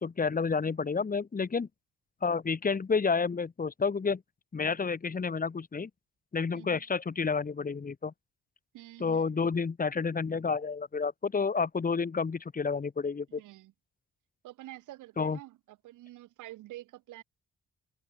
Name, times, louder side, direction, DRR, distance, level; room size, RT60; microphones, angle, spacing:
voice 1, 0.0-1.7 2.2-4.2 4.5-5.9 6.3-8.1 9.0-13.3 15.2-15.4, left 5 dB, 30° left, 1.5 m, -30 dB
voice 2, 8.7-9.5 13.4-13.7 14.4-17.2, right 16 dB, 90° right, 2.4 m, -48 dB
cardioid pair, 90°, 30 cm